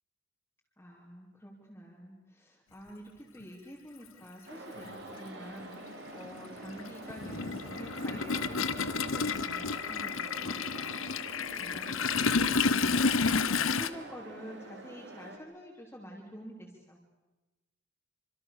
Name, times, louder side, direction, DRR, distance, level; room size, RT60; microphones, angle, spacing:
voice 1, 0.8-11.3 11.5-17.0, equal, 10° left, -4 dB, 3.5 m, -47 dB
Toilet flush, 3.4-3.5 4.8-4.9 5.3-13.9, left 5 dB, 80° left, 1.1 m, -30 dB
sound 1, 4.5-15.4, right 2 dB, 55° right, 3.6 m, -46 dB
27.5 x 26.0 x 6.8 m, 1.1 s
head